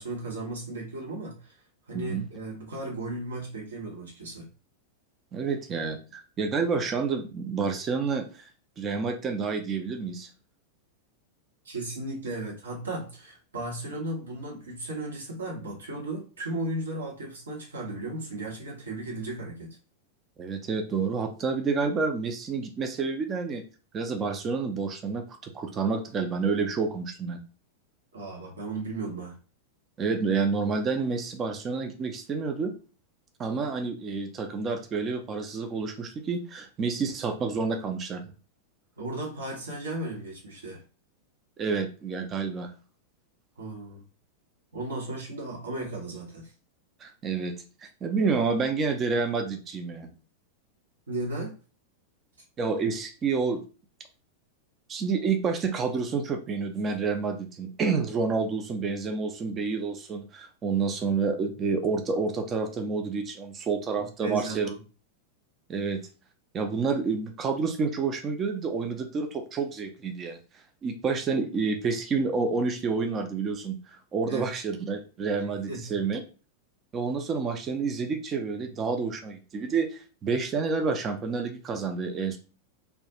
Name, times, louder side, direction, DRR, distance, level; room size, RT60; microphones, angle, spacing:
voice 1, 0.0-1.6 1.9-4.5 11.6-19.8 28.1-29.4 39.0-40.8 43.6-44.0 44.7-46.5 51.1-51.5 64.0-64.8 74.2-74.5 75.7-75.9, right 2 dB, 70° right, -2 dB, 0.9 m, -35 dB
voice 2, 1.9-2.2 5.3-8.5 8.8-10.3 20.4-23.6 23.9-27.4 30.0-32.7 33.4-38.2 41.6-42.7 47.0-47.5 48.0-50.1 52.6-53.6 54.9-64.7 65.7-66.0 66.5-70.4 70.8-73.8 74.1-76.2 76.9-82.4, right 4 dB, 25° right, 6 dB, 0.4 m, -29 dB
2.3 x 2.1 x 2.8 m, 0.35 s
figure-of-eight pair, 90°, 0 cm